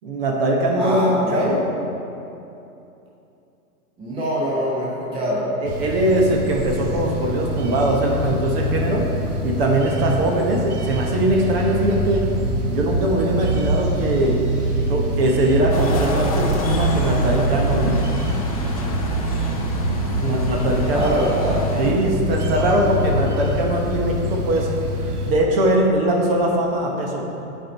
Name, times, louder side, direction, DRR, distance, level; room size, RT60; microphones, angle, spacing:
voice 1, 0.0-1.1 1.3-1.6 5.6-9.1 9.4-12.2 12.7-14.4 14.9-18.0 20.2-21.2 21.8-24.7 25.2-27.2, right 1 dB, 40° right, 0 dB, 1.0 m, -21 dB
voice 2, 0.8-1.6 4.0-5.5 20.8-21.7, equal, 10° right, -6 dB, 0.9 m, -24 dB
sound 1, 5.6-25.3, right 1 dB, 85° right, 1.1 m, -25 dB
sound 2, 15.7-21.9, left 2 dB, 25° left, 0.4 m, -30 dB
9.7 x 4.5 x 4.4 m, 2.8 s
hypercardioid pair, 150°, 45 cm